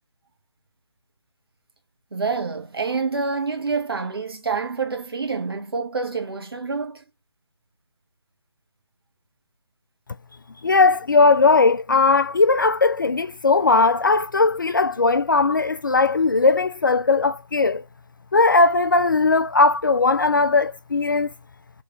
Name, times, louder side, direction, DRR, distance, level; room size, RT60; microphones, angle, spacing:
voice 1, 2.1-7.0, right 4 dB, 55° right, 1.1 m, -27 dB
voice 2, 10.6-17.8 18.3-21.3, left 3 dB, 45° left, 0.4 m, -18 dB
3.5 x 3.2 x 3.1 m
figure-of-eight pair, 155°, 15 cm